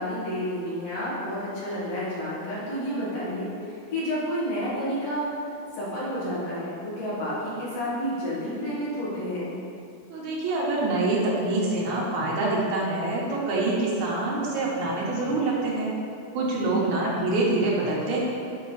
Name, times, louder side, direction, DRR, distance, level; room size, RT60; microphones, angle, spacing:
voice 1, 0.0-5.3 5.7-9.6 16.6-16.9, equal, 55° left, -9 dB, 2.9 m, -30 dB
voice 2, 10.1-15.9 16.3-18.2, right 2 dB, 75° right, -4 dB, 2.5 m, -25 dB
7.3 x 6.0 x 4.0 m, 2.5 s
omnidirectional pair, 3.6 m